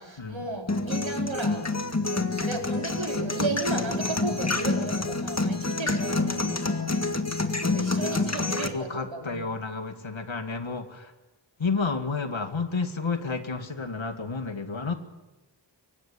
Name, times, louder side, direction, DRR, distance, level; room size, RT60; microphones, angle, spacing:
voice 1, 0.0-1.6 2.0-6.9 7.6-9.5, right 2 dB, 85° right, 1 dB, 4.6 m, -34 dB
sound 1, 0.7-8.7, left 3 dB, 35° left, 1.9 m, -27 dB
voice 2, 8.0-8.4 8.7-11.1 11.6-14.9, left 4 dB, 90° left, 7 dB, 2.1 m, -31 dB
24.5 x 18.5 x 9.0 m, 1.1 s
wide cardioid pair, 55°, 45 cm